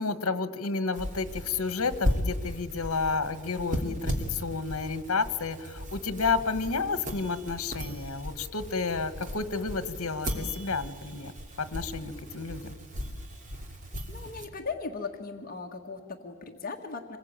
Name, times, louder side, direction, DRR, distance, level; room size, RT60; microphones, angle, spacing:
voice 1, 0.0-11.3 11.6-12.8, left 4 dB, 75° left, 12 dB, 1.5 m, -31 dB
sound 1, 0.9-14.5, equal, 35° right, 2.9 m, -36 dB
voice 2, 14.1-17.2, left 4 dB, 40° left, 3 dB, 1.6 m, -38 dB
27.0 x 21.0 x 9.0 m, 1.5 s
head